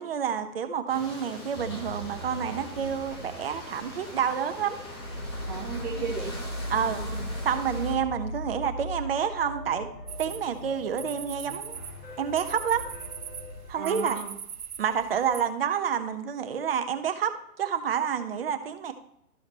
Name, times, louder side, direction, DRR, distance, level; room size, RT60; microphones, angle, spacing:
voice 1, 0.0-4.8 6.7-7.0 7.4-9.9 10.2-11.8 12.2-12.8 13.7-14.2 14.8-18.9, right 8 dB, 40° right, 7 dB, 1.0 m, -29 dB
sound 1, 0.9-8.0, left 1 dB, 15° left, 1.0 m, -42 dB
sound 2, 1.5-13.7, equal, 90° left, 2.8 m, -39 dB
voice 2, 5.4-6.5 6.8-7.2 13.7-14.3, right 5 dB, 5° right, -9 dB, 0.6 m, -35 dB
sound 3, 10.1-15.4, right 7 dB, 80° right, 1.2 m, -42 dB
13.0 x 4.9 x 3.0 m, 0.76 s
hypercardioid pair, 160°, 43 cm